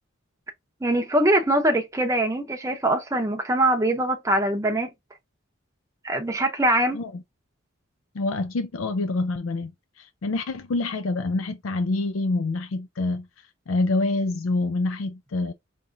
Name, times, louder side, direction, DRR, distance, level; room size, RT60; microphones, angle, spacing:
voice 1, 0.8-4.9 6.0-7.0, right 1 dB, 15° right, 0.7 m, -23 dB
voice 2, 8.1-9.7 10.0-13.3 13.7-15.5, left 2 dB, 80° left, 0.5 m, -26 dB
5.0 x 3.0 x 2.6 m
head